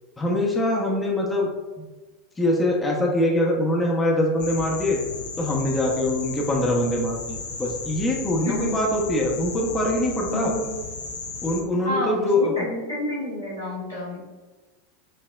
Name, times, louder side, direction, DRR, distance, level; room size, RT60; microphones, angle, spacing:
voice 1, 0.2-1.5 1.8-1.9 2.4-5.0 5.4-10.5 11.4-12.5, left 1 dB, 15° left, -2 dB, 0.6 m, -23 dB
sound 1, 4.4-11.6, left 5 dB, 70° left, 0.5 m, -35 dB
voice 2, 8.4-8.8 10.3-10.7 11.8-14.2, equal, 90° left, -7 dB, 1.3 m, -29 dB
5.5 x 2.1 x 2.3 m, 1.2 s
figure-of-eight pair, 85°, 0 cm